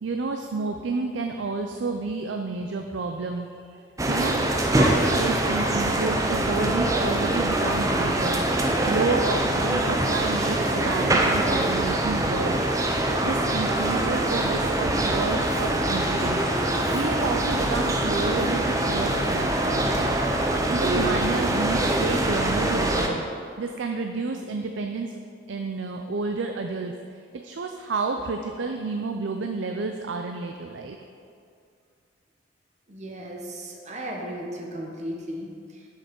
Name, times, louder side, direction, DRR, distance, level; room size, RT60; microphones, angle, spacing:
voice 1, 0.0-4.4 4.8-8.4 8.9-12.6 12.9-16.4 16.9-20.1 20.4-23.2 23.6-25.1 25.5-26.9 27.3-31.0, right 3 dB, 75° right, 4 dB, 0.5 m, -30 dB
sound 1, 4.0-23.1, right 1 dB, 15° right, 0.6 m, -24 dB
voice 2, 32.9-35.5, equal, 35° right, 0 dB, 1.1 m, -35 dB
7.5 x 6.6 x 5.3 m, 2.3 s
head